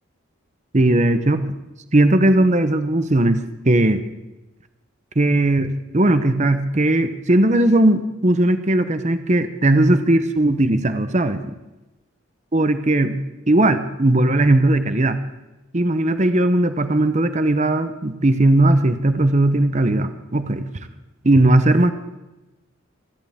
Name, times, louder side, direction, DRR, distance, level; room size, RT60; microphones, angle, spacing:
voice 1, 0.7-1.5 1.9-4.0 5.2-11.5 12.5-13.2 13.5-15.2 15.7-20.7 21.2-21.9, right 1 dB, 35° right, 10 dB, 0.8 m, -18 dB
26.5 x 11.0 x 3.6 m, 1.0 s
head